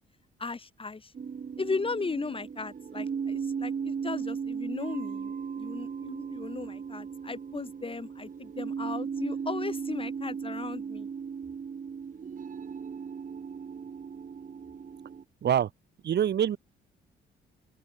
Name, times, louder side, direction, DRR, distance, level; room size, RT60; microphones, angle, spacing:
voice 1, 0.4-1.1 1.6-11.1, left 4 dB, 25° left, 6.9 m, -36 dB
sound 1, 1.1-15.2, right 6 dB, 40° right, 2.8 m, -37 dB
voice 2, 16.0-16.6, right 9 dB, 60° right, 1.6 m, -25 dB
open air
cardioid pair, 90°, 20 cm